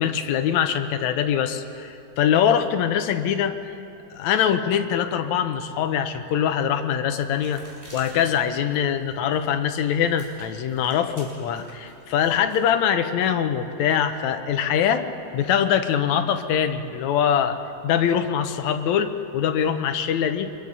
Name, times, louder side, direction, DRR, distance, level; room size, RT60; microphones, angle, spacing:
voice 1, 0.0-3.6 4.1-7.6 7.9-15.1 15.3-20.5, left 8 dB, 75° left, 8 dB, 2.2 m, -23 dB
sound 1, 7.1-12.7, equal, 20° right, 5.5 m, -49 dB
24.5 x 22.0 x 5.5 m, 2.6 s
omnidirectional pair, 3.3 m